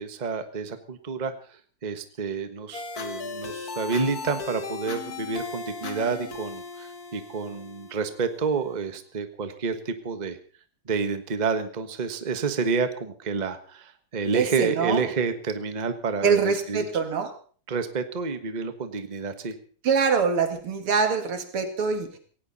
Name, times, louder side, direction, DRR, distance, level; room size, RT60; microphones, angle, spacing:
voice 1, 0.0-1.3 1.8-10.4 10.9-16.9 17.7-19.5, right 5 dB, 25° right, 9 dB, 1.2 m, -29 dB
sound 1, 2.7-8.7, left 4 dB, 45° left, 2.0 m, -37 dB
voice 2, 14.3-15.0 16.2-17.3 19.8-22.1, right 5 dB, 85° right, 7 dB, 2.9 m, -24 dB
18.0 x 17.0 x 4.2 m, 0.43 s
omnidirectional pair, 2.4 m